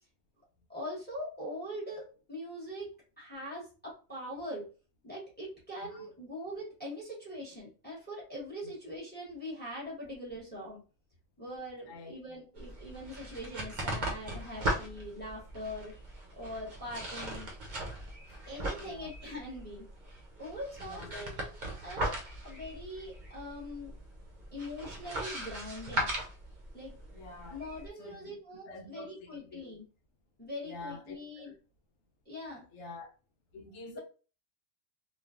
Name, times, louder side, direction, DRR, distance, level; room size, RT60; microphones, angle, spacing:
voice 1, 0.7-4.7 5.0-10.8 11.4-15.9 16.3-17.5 18.5-19.9 20.4-21.6 21.8-22.1 22.4-23.9 24.5-26.1 26.7-26.9 27.5-29.9 30.4-31.5 32.2-32.6 33.9-34.0, equal, 10° left, 1.0 m, -42 dB
sound 1, 12.6-27.9, right 1 dB, 50° right, 0.8 m, -39 dB
voice 2, 18.7-19.1 20.8-21.2 27.1-27.6 28.0-28.3 28.7-29.7 30.6-31.5 32.7-33.1 33.5-34.0, left 2 dB, 90° left, 1.0 m, -47 dB
3.1 x 2.3 x 2.4 m
omnidirectional pair, 1.2 m